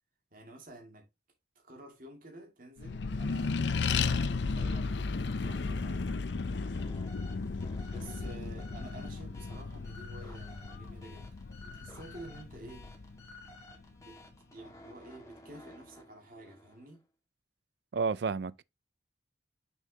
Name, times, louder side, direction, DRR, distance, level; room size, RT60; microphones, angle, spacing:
voice 1, 0.3-1.1 1.6-5.1 5.4-6.1 6.6-7.0 7.9-11.3 11.6-12.9 14.0-14.2 14.5-17.0, right 1 dB, 50° right, 2.4 m, -51 dB
Accelerating revving vroom, 2.8-13.7, left 4 dB, 75° left, 0.6 m, -34 dB
sound 1, 6.4-17.0, left 2 dB, 20° left, 1.9 m, -54 dB
voice 2, 17.9-18.6, right 5 dB, 65° right, 0.4 m, -31 dB
6.4 x 5.4 x 2.9 m
head